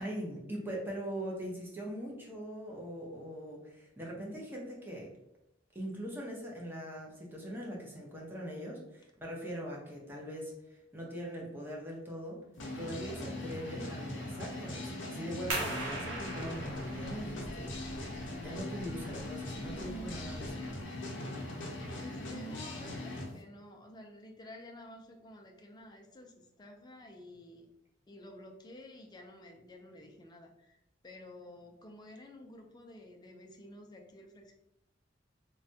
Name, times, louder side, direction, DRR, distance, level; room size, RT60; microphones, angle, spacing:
voice 1, 0.0-5.1 5.7-12.4 12.8-17.8 18.3-20.7, equal, 10° right, -3 dB, 0.7 m, -41 dB
sound 1, 12.6-23.3, left 1 dB, 75° left, 0.6 m, -40 dB
sound 2, 15.5-20.8, right 2 dB, 80° right, 0.8 m, -41 dB
voice 2, 22.0-27.7 28.1-30.8 31.0-34.5, left 1 dB, 20° left, 2 dB, 0.4 m, -51 dB
3.2 x 2.2 x 2.7 m, 0.84 s
head